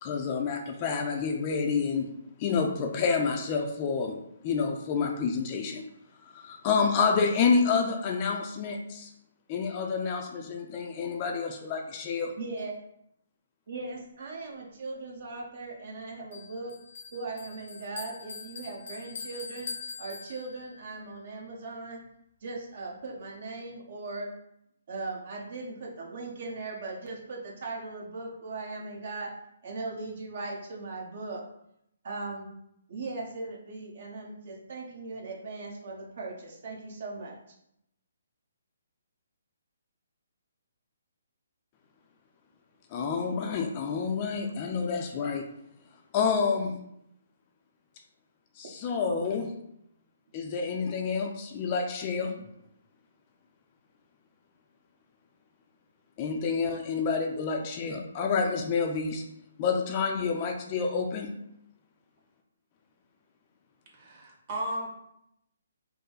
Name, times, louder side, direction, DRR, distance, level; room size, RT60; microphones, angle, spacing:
voice 1, 0.0-2.1 2.4-5.9 6.3-9.1 9.5-12.3 42.9-45.5 46.1-46.8 48.6-49.5 50.3-52.3 56.2-59.2 59.6-61.3, left 5 dB, 30° left, 3 dB, 0.5 m, -28 dB
voice 2, 12.4-12.7 13.7-16.7 17.1-19.7 20.0-22.0 22.4-24.3 24.9-29.3 29.6-31.4 32.0-32.5 32.9-37.4 49.0-49.3 52.4-52.5, right 3 dB, 55° right, -2 dB, 1.1 m, -39 dB
Bell, 16.3-20.8, left 5 dB, 65° left, 0.7 m, -43 dB
voice 3, 63.9-64.9, right 1 dB, 35° right, -3 dB, 1.4 m, -34 dB
5.3 x 2.0 x 3.9 m, 0.78 s
hypercardioid pair, 155°, 0 cm